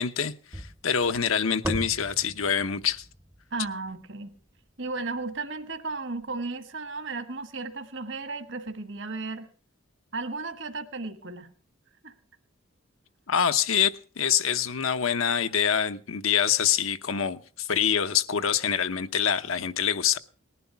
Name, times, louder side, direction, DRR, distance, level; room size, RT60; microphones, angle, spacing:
voice 1, 0.0-3.0 13.3-20.2, left 8 dB, 80° left, 0.9 m, -25 dB
sound 1, 0.5-4.8, right 1 dB, 15° right, 0.7 m, -38 dB
voice 2, 3.5-4.3 4.8-9.5 10.1-11.5 12.0-12.1, right 3 dB, 60° right, 1.4 m, -34 dB
19.0 x 11.5 x 5.7 m
head